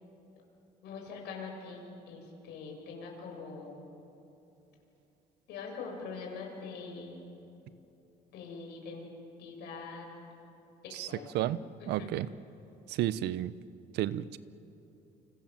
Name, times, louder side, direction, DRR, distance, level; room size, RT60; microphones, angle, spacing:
voice 1, 0.8-3.8 5.5-7.2 8.3-9.1 9.4-10.1 10.8-11.3 11.8-12.1, left 4 dB, 80° left, 0 dB, 7.3 m, -43 dB
voice 2, 11.9-12.3 12.9-13.5 13.9-14.4, right 13 dB, 80° right, 16 dB, 0.9 m, -31 dB
29.0 x 26.5 x 7.7 m, 2.9 s
cardioid pair, 110°, 17 cm